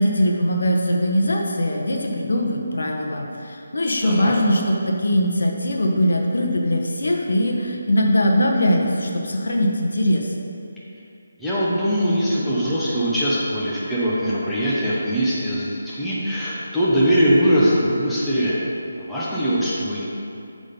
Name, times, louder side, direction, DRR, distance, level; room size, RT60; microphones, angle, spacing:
voice 1, 0.0-10.3, equal, 80° left, 0 dB, 1.1 m, -21 dB
voice 2, 4.0-4.3 11.4-18.6 19.0-20.0, equal, ahead, -11 dB, 0.9 m, -21 dB
8.0 x 3.8 x 5.4 m, 2.6 s
hypercardioid pair, 170°, 0 cm